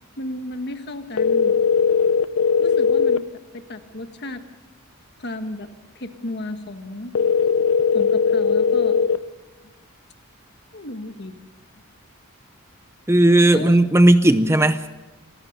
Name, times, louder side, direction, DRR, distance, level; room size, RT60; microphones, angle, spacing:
voice 1, 0.2-1.5 2.6-3.2 3.5-4.4 5.2-5.7 5.9-7.1 7.9-9.0 10.7-11.3 13.5-13.8, left 1 dB, 50° left, 1.6 m, -33 dB
sound 1, 1.2-3.2 7.1-9.2, left 6 dB, 65° left, 0.6 m, -18 dB
voice 2, 13.1-14.9, right 1 dB, 10° right, 0.5 m, -15 dB
26.0 x 15.5 x 6.7 m
head